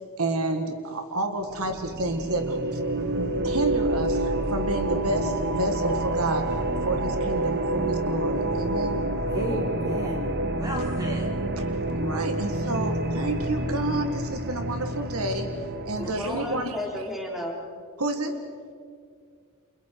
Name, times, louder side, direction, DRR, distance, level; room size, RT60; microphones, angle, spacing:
voice 1, 0.2-2.8 3.2-6.6 6.8-9.0 11.6-15.5 15.9-16.8 18.0-18.4, right 1 dB, 75° right, 6 dB, 1.9 m, -30 dB
sound 1, 1.5-16.9, right 2 dB, 50° right, 1.1 m, -28 dB
voice 2, 9.3-11.3 15.9-16.2, equal, 15° right, -2 dB, 5.3 m, -33 dB
voice 3, 16.0-17.5, left 1 dB, ahead, -2 dB, 4.4 m, -33 dB
30.0 x 28.0 x 4.8 m, 2.2 s
head